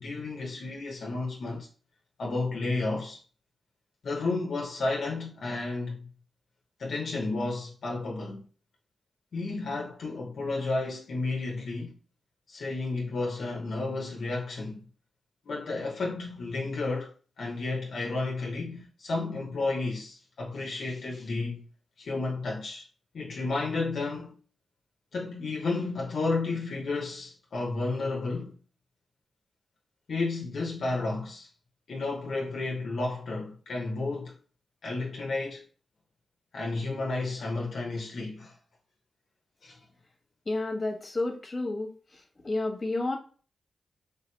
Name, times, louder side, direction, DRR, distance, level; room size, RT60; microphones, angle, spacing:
voice 1, 0.0-1.7 2.2-3.2 4.0-6.1 6.8-8.4 9.3-11.9 12.5-14.8 15.5-21.6 22.0-22.9 23.1-24.4 25.1-28.5 30.1-31.5 31.9-34.3 34.8-35.6 36.5-38.6 39.6-39.8, left 3 dB, 70° left, 0.6 m, -32 dB
voice 2, 40.4-43.2, left 2 dB, 40° left, 1.1 m, -31 dB
3.3 x 2.7 x 2.2 m
cardioid pair, 70°, 0 cm